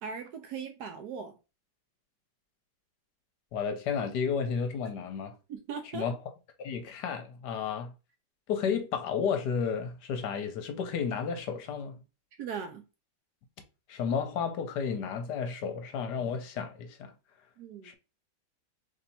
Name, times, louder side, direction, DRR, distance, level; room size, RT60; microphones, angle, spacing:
voice 1, 0.0-1.4 5.5-6.1 12.4-12.8 17.6-17.9, right 6 dB, 70° right, 1.0 m, -39 dB
voice 2, 3.5-5.3 5.9-6.1 6.6-7.9 8.5-12.0 13.9-17.1 17.8-17.9, left 6 dB, 70° left, 1.2 m, -32 dB
3.3 x 2.7 x 4.0 m
omnidirectional pair, 2.0 m